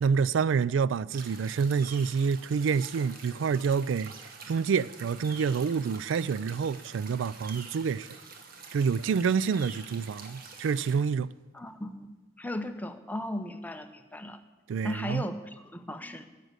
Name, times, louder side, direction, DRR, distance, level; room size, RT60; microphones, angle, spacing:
voice 1, 0.0-4.1 4.5-8.1 8.7-11.3 14.7-15.2, right 6 dB, 90° right, 0.3 m, -27 dB
sound 1, 1.1-11.0, right 4 dB, 50° right, 1.4 m, -47 dB
voice 2, 11.5-12.1 12.4-14.4 14.8-16.2, left 1 dB, 10° left, 0.7 m, -36 dB
10.0 x 7.6 x 8.0 m
head